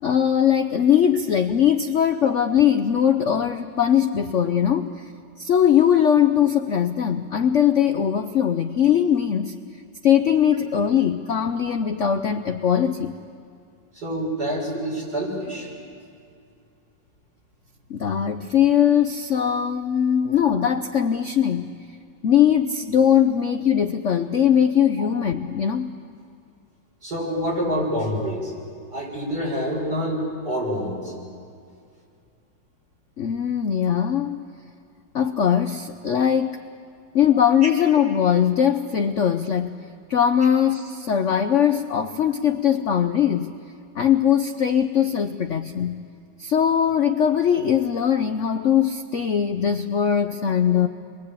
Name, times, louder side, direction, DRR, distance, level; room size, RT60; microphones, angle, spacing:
voice 1, 0.0-5.0 5.4-9.6 10.0-13.1 17.9-21.7 22.2-26.0 33.2-34.5 35.1-36.6 37.1-39.8 40.1-43.5 43.9-46.0 46.4-50.9, left 9 dB, 55° left, 7 dB, 0.8 m, -20 dB
voice 2, 13.9-15.7 27.0-28.5 28.9-31.1, equal, 55° right, -5 dB, 7.1 m, -27 dB
29.5 x 23.0 x 8.5 m, 2.3 s
omnidirectional pair, 2.1 m